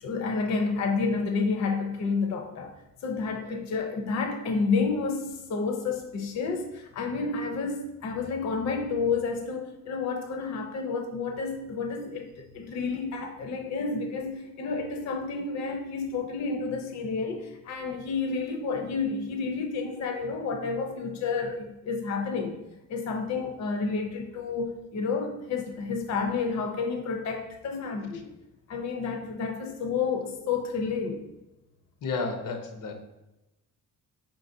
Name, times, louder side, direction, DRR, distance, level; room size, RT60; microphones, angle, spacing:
voice 1, 0.0-2.7 3.0-22.6 22.9-28.3 28.7-31.3, left 4 dB, 55° left, 3 dB, 0.6 m, -30 dB
voice 2, 32.0-33.0, left 4 dB, 90° left, 4 dB, 0.8 m, -32 dB
4.9 x 3.8 x 2.6 m, 0.98 s
cardioid pair, 135°, 33 cm